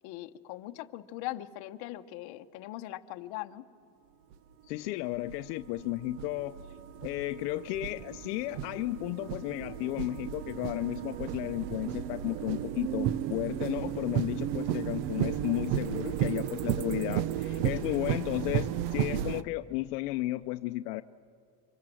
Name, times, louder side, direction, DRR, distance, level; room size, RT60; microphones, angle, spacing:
voice 1, 0.0-3.6, left 15 dB, 50° left, 8 dB, 1.0 m, -40 dB
sound 1, 4.3-4.4 5.1-19.4, right 10 dB, 65° right, 0.9 m, -33 dB
voice 2, 4.7-6.5 7.0-21.0, left 17 dB, 70° left, 9 dB, 0.7 m, -34 dB
27.5 x 25.0 x 7.7 m, 2.3 s
cardioid pair, 160°, 49 cm